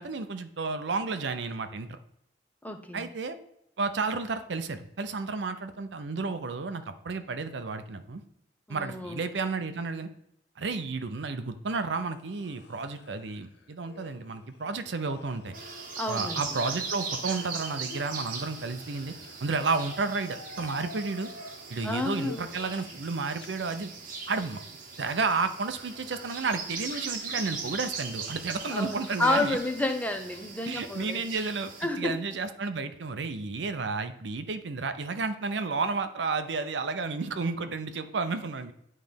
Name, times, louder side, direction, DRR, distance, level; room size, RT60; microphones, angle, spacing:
voice 1, 0.0-2.0 2.9-3.4 3.8-8.2 8.7-10.1 10.6-15.5 16.1-19.1 19.4-21.3 21.7-23.9 24.3-24.6 25.0-29.6 30.6-38.7, right 4 dB, 80° right, 9 dB, 0.6 m, -32 dB
voice 2, 2.6-3.1 8.7-9.2 16.0-16.4 21.8-22.5 28.7-31.2 31.8-32.2, left 2 dB, 10° left, 6 dB, 0.7 m, -30 dB
sound 1, 11.9-23.5 23.7-26.4 26.8-31.3, left 3 dB, 65° left, 0.8 m, -50 dB
sound 2, 15.5-31.9, right 5 dB, 50° right, 1.1 m, -40 dB
9.4 x 3.3 x 5.1 m, 0.77 s
head